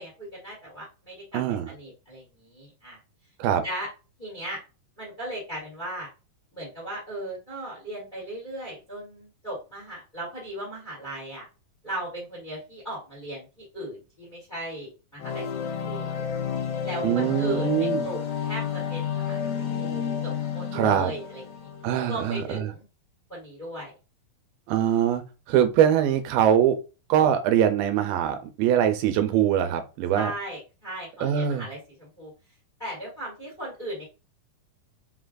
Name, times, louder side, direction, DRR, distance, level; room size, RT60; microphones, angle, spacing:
voice 1, 0.0-3.0 3.6-3.9 4.2-4.6 5.0-6.1 6.5-11.5 11.8-16.2 16.8-21.7 22.1-22.8 23.3-23.9 30.1-32.3 32.8-34.0, right 1 dB, 25° left, -5 dB, 1.0 m, -37 dB
voice 2, 1.3-1.7 3.4-3.6 17.0-18.0 20.7-21.1 21.8-22.7 24.7-25.2 25.5-26.8 27.1-30.3 31.2-31.7, right 10 dB, 90° right, 7 dB, 2.4 m, -22 dB
sound 1, 15.2-22.1, left 7 dB, 80° left, 1.8 m, -30 dB
5.5 x 2.2 x 2.5 m, 0.31 s
omnidirectional pair, 4.1 m